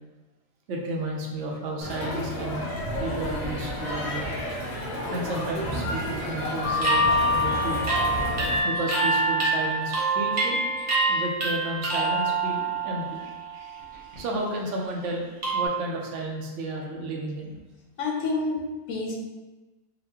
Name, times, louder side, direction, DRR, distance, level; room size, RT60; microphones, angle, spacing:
voice 1, 0.7-2.7 3.0-4.4 5.1-7.9 8.6-10.6 11.1-17.5, right 1 dB, 70° right, 0 dB, 0.9 m, -33 dB
Crowd, 1.8-8.6, equal, 65° left, 1.3 m, -31 dB
sound 1, 6.6-13.5 13.9-14.3 15.4-15.7, right 2 dB, 35° right, 0.9 m, -25 dB
voice 2, 18.0-19.1, left 3 dB, 80° left, -1 dB, 1.0 m, -28 dB
4.0 x 2.1 x 2.8 m, 1.2 s
omnidirectional pair, 1.4 m